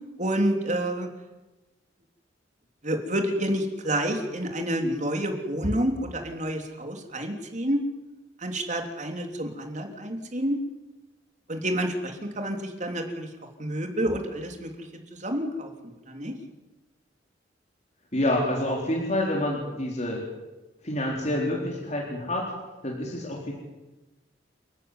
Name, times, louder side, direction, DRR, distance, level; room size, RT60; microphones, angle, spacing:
voice 1, 0.2-1.1 2.8-7.8 8.4-10.6 11.5-13.3 13.6-15.7 16.1-16.3, right 1 dB, 40° right, 3 dB, 3.3 m, -29 dB
voice 2, 18.1-20.2 20.8-22.5 22.8-23.5, left 1 dB, 40° left, -2 dB, 4.2 m, -27 dB
29.5 x 14.0 x 9.8 m, 1.1 s
head